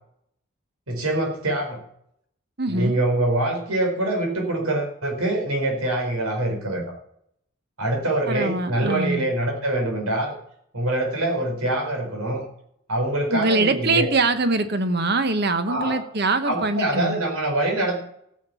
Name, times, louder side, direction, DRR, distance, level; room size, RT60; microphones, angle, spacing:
voice 1, 0.9-1.8 2.7-6.8 7.8-10.4 10.7-12.4 12.9-14.1 15.7-16.0 16.4-18.0, right 1 dB, 90° right, 3 dB, 4.8 m, -24 dB
voice 2, 2.6-3.0 8.3-9.2 13.3-17.2, right 2 dB, 50° right, 9 dB, 1.2 m, -23 dB
15.5 x 7.4 x 6.9 m, 0.70 s
head